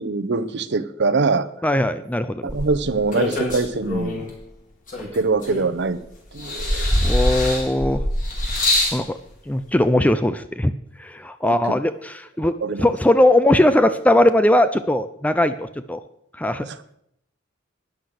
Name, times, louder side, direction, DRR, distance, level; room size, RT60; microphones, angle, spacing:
voice 1, 0.0-1.5 2.4-4.3 5.0-6.0 6.3-6.9 11.4-11.6 12.4-12.9 16.6-16.8, right 3 dB, 60° right, 13 dB, 0.8 m, -23 dB
voice 2, 1.6-2.5 7.0-8.0 8.9-9.1 9.5-10.7 11.0-12.5 12.8-16.0 16.4-16.7, left 1 dB, 10° left, 11 dB, 0.5 m, -19 dB
sound 1, 2.5-4.3 4.9-5.9 6.4-9.0 9.9-10.0, left 1 dB, 45° left, 5.0 m, -23 dB
12.0 x 10.0 x 6.5 m, 0.75 s
head